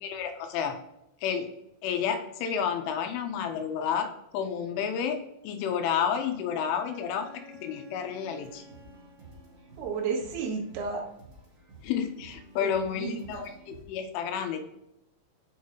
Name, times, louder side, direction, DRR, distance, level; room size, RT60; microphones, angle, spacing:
voice 1, 0.0-0.8 1.2-1.5 1.8-8.6 11.8-14.6, left 7 dB, 90° left, 7 dB, 3.2 m, -31 dB
Bowed string instrument, 6.6-10.1, left 1 dB, 55° left, 3.2 m, -53 dB
sound 1, 8.4-13.8, right 1 dB, 50° right, 2.0 m, -52 dB
voice 2, 9.8-11.1 12.6-13.4, right 5 dB, 85° right, 0 dB, 4.2 m, -33 dB
8.6 x 5.6 x 3.8 m, 0.84 s
omnidirectional pair, 5.6 m